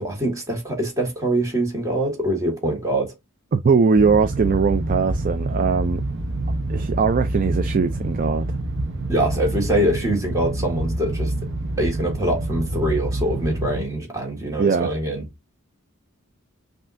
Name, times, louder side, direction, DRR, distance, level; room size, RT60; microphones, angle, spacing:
voice 1, 0.0-3.1 9.1-11.3 11.8-15.3, right 1 dB, 15° right, 1.7 m, -24 dB
voice 2, 3.5-6.0 6.7-8.5 14.6-14.9, right 5 dB, 40° right, 0.4 m, -20 dB
sound 1, 4.0-13.8, right 1 dB, 60° right, 0.8 m, -27 dB
5.5 x 2.7 x 2.5 m
head